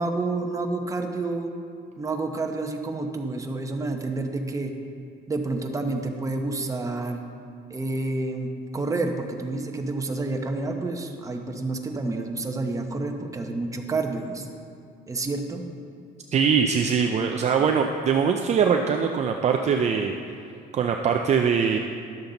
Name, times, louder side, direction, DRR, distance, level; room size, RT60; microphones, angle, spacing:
voice 1, 0.0-1.5 2.0-4.7 5.3-7.2 7.7-14.5 15.1-15.6, right 2 dB, 20° right, 3 dB, 0.9 m, -29 dB
voice 2, 16.3-20.1 20.7-21.8, right 6 dB, 40° right, 3 dB, 0.5 m, -22 dB
11.5 x 7.0 x 3.9 m, 2.4 s
cardioid pair, 110°, 17 cm